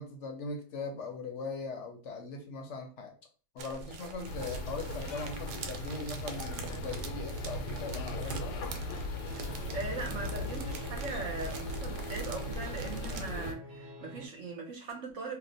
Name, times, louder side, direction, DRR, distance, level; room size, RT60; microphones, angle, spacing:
voice 1, 0.0-3.1 3.5-8.6, left 3 dB, 60° left, 0.8 m, -40 dB
sound 1, 3.6-13.3, right 4 dB, 85° right, 1.1 m, -45 dB
sound 2, 4.2-13.5, left 1 dB, 90° left, 1.2 m, -38 dB
sound 3, 9.2-14.3, right 3 dB, 35° right, 0.3 m, -46 dB
voice 2, 9.7-15.4, right 3 dB, 60° right, 1.0 m, -40 dB
2.8 x 2.1 x 3.9 m
omnidirectional pair, 1.7 m